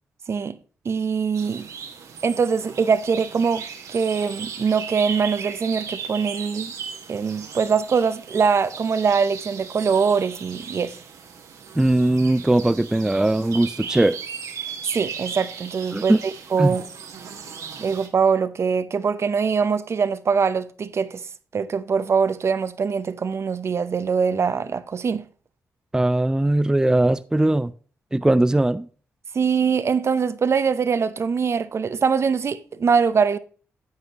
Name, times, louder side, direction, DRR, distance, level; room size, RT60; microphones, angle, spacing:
voice 1, 0.8-1.7 2.2-6.7 7.1-10.9 14.9-16.1 16.5-16.8 17.8-21.2 21.5-25.2 29.3-33.4, right 6 dB, 50° right, 0.6 m, -22 dB
sound 1, 1.3-18.1, right 6 dB, 75° right, 1.3 m, -37 dB
voice 2, 11.8-14.2 15.9-16.2 16.6-16.8 25.9-27.7 28.1-28.9, right 1 dB, 10° right, 0.4 m, -19 dB
9.5 x 8.0 x 2.9 m
supercardioid pair, 50°, 6 cm